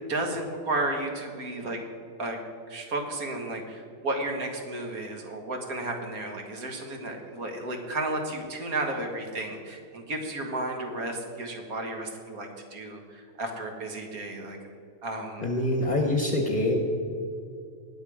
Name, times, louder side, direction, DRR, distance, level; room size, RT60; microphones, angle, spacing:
voice 1, 0.1-1.8 2.2-2.4 2.7-14.6 15.0-15.4, right 2 dB, 65° right, 3 dB, 2.0 m, -33 dB
voice 2, 15.4-16.8, left 1 dB, 30° left, 3 dB, 1.0 m, -25 dB
19.0 x 7.1 x 5.0 m, 2.4 s
omnidirectional pair, 1.6 m